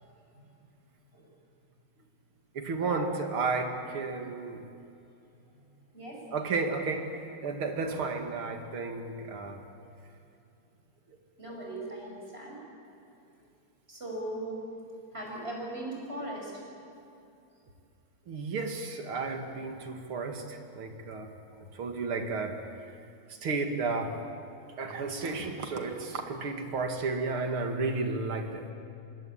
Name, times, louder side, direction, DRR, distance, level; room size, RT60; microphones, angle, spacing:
voice 1, 2.5-4.6 6.3-9.6 18.3-21.3 21.7-22.6 23.3-24.2 24.8-28.7, right 3 dB, 75° right, 5 dB, 2.9 m, -33 dB
voice 2, 5.9-6.3 11.4-12.6 13.3-13.4 13.9-14.6 15.1-16.7 21.5-21.6, right 1 dB, 25° right, -2 dB, 6.2 m, -39 dB
25.0 x 21.0 x 8.9 m, 2.6 s
omnidirectional pair, 2.4 m